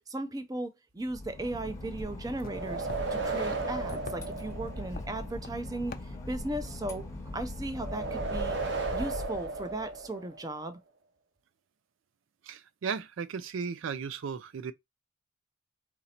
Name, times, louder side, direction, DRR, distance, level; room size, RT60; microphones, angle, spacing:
voice 1, 0.1-7.0 7.3-8.6 8.9-10.8, right 1 dB, 20° right, 0.5 m, -37 dB
Boat Water vehicle / Engine, 1.0-10.0, left 1 dB, 15° left, 0.8 m, -40 dB
sound 1, 1.5-6.7, left 4 dB, 45° left, 0.4 m, -49 dB
sound 2, 2.4-5.2 7.8-10.5, right 3 dB, 60° right, 0.9 m, -35 dB
voice 2, 12.5-14.7, right 6 dB, 75° right, 0.4 m, -35 dB
4.1 x 2.6 x 4.3 m
head